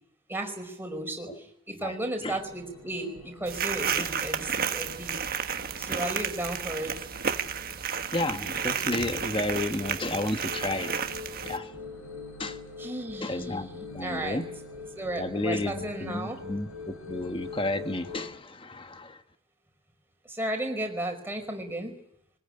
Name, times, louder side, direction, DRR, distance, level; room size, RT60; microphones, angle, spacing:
voice 1, 0.3-5.2 5.8-7.1 12.8-14.4 14.9-16.4 20.2-21.9, right 1 dB, 10° right, 3 dB, 5.1 m, -34 dB
sound 1, 2.3-18.3, left 4 dB, 70° left, 6.9 m, -44 dB
sound 2, 3.5-11.6, right 7 dB, 40° right, 1.5 m, -32 dB
voice 2, 8.1-10.9 11.4-11.7 12.4-12.6 13.2-13.7 13.9-14.5 15.2-19.2, left 2 dB, 25° left, 8 dB, 1.4 m, -32 dB
22.5 x 20.0 x 10.0 m, 0.76 s
head